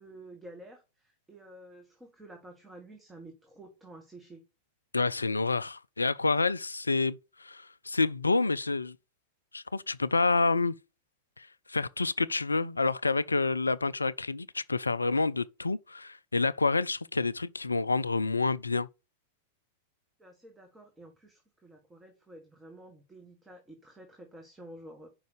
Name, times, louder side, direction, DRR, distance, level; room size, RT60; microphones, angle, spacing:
voice 1, 0.0-4.4 20.2-25.1, right 1 dB, 10° right, 1.4 m, -50 dB
voice 2, 4.9-9.0 9.5-10.8 11.4-18.9, left 3 dB, 80° left, 0.3 m, -28 dB
5.3 x 5.2 x 6.6 m
figure-of-eight pair, 90°, 0 cm